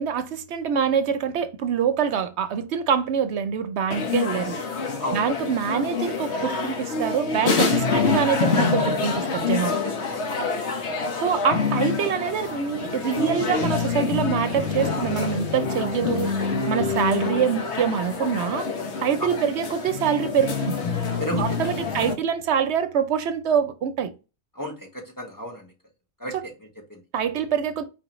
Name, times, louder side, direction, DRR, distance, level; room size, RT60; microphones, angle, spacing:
voice 1, 0.0-4.6 5.1-9.8 11.2-16.3 16.7-18.7 19.0-20.8 21.3-24.1 27.1-27.8, right 7 dB, 80° right, 0.9 m, -25 dB
sound 1, 3.9-22.1, left 4 dB, 90° left, 1.2 m, -26 dB
voice 2, 9.8-10.4 10.7-10.9 19.2-19.4 21.2-21.7 21.9-22.1 24.5-25.7 26.2-27.0 27.4-27.5, equal, 20° left, 1.1 m, -34 dB
4.7 x 3.6 x 3.0 m
omnidirectional pair, 1.1 m